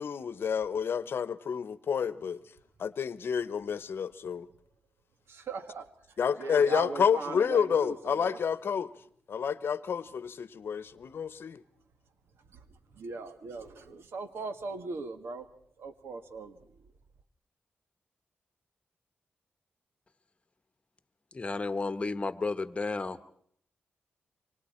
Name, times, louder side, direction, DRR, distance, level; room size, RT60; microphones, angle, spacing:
voice 1, 0.0-2.4 2.8-4.5 6.2-8.9 9.3-11.6, left 7 dB, 70° left, 0.9 m, -29 dB
voice 2, 5.3-5.9 6.4-8.4 13.0-15.5 15.8-16.5, right 4 dB, 80° right, 1.7 m, -39 dB
voice 3, 21.3-23.2, left 3 dB, 30° left, 1.2 m, -32 dB
28.0 x 24.5 x 4.4 m
cardioid pair, 90°, 4 cm